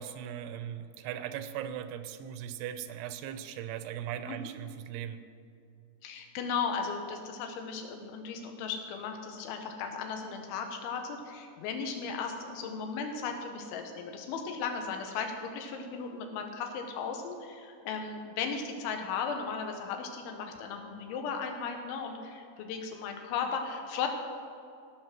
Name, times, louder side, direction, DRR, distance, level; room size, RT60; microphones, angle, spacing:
voice 1, 0.0-5.2, right 10 dB, 85° right, 11 dB, 3.0 m, -39 dB
voice 2, 6.0-24.1, left 6 dB, 90° left, 4 dB, 3.5 m, -36 dB
17.0 x 5.8 x 6.1 m, 2.5 s
omnidirectional pair, 5.3 m